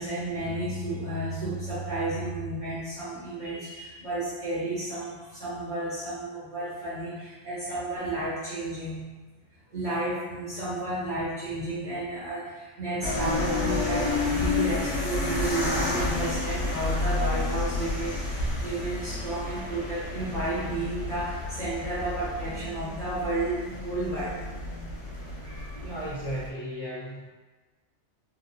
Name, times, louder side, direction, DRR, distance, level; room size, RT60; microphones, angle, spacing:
voice 1, 0.0-9.0 9.7-24.4 25.4-25.8, right 2 dB, 45° right, -12 dB, 0.9 m, -32 dB
sound 1, 13.0-26.5, left 2 dB, 75° left, 1.0 m, -30 dB
voice 2, 25.7-27.3, equal, 30° left, -10 dB, 0.5 m, -35 dB
2.9 x 2.0 x 2.5 m, 1.3 s
omnidirectional pair, 1.2 m